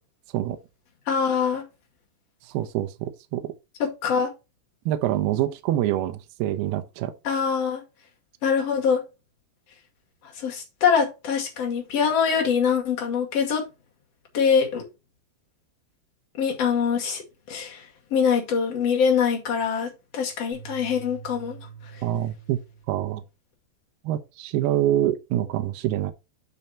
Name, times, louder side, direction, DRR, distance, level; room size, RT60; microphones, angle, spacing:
voice 1, 1.1-1.6 3.8-4.3 7.2-7.8 8.4-9.0 10.4-13.6 14.3-14.9 16.4-17.2 17.5-17.8 18.1-21.6, left 6 dB, 45° left, 2.5 m, -23 dB
voice 2, 2.5-3.5 4.9-7.1 22.0-22.6 22.9-23.2 24.0-26.1, right 13 dB, 75° right, 2.5 m, -25 dB
sound 1, 20.5-23.0, right 7 dB, 30° right, 3.6 m, -44 dB
8.8 x 4.9 x 4.2 m
omnidirectional pair, 5.3 m